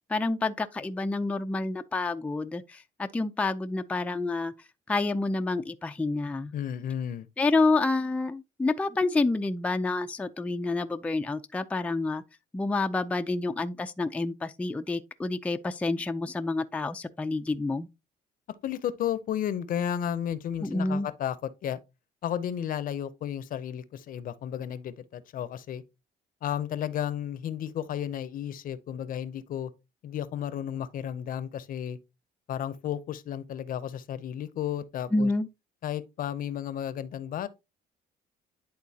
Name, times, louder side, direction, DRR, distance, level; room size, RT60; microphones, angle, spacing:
voice 1, 0.1-4.5 4.9-6.5 7.4-12.2 12.5-17.9 20.6-21.1 35.1-35.5, left 3 dB, 10° left, 0.4 m, -28 dB
voice 2, 6.5-7.3 18.6-21.8 22.2-25.8 26.4-29.7 30.0-32.0 32.5-35.3 35.8-37.5, left 10 dB, 55° left, 0.6 m, -33 dB
10.5 x 3.8 x 2.8 m
cardioid pair, 110°, 17 cm